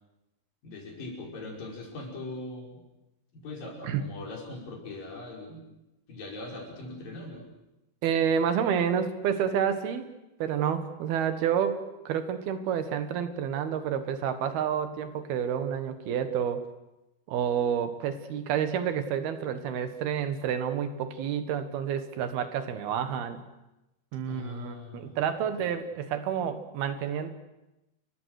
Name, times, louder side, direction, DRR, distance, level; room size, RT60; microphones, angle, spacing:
voice 1, 0.6-2.8 3.3-5.6 6.1-7.5 24.3-25.1 25.6-25.7, left 2 dB, 60° left, -1 dB, 6.9 m, -41 dB
voice 2, 8.0-10.1 10.4-16.6 17.3-23.4 24.1-27.3, right 8 dB, 80° right, 9 dB, 3.5 m, -29 dB
30.0 x 23.0 x 6.6 m, 0.95 s
omnidirectional pair, 4.4 m